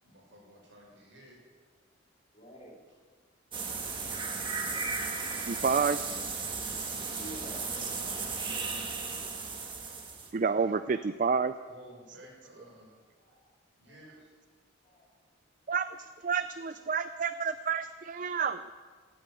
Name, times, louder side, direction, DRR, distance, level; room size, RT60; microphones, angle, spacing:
voice 1, 0.0-1.4 7.5-8.0 11.6-12.9 13.8-14.3, right 1 dB, 65° right, -2 dB, 6.0 m, -53 dB
voice 2, 2.3-2.7 7.2-8.3 13.2-13.4 13.9-14.1 14.8-15.1, right 1 dB, 30° left, -2 dB, 3.5 m, -50 dB
sound 1, 3.5-10.3, right 4 dB, 25° right, 1.5 m, -35 dB
voice 3, 5.5-6.1 10.3-11.5 15.7-18.7, right 5 dB, 40° right, 12 dB, 0.4 m, -29 dB
16.0 x 8.6 x 9.0 m, 1.6 s
head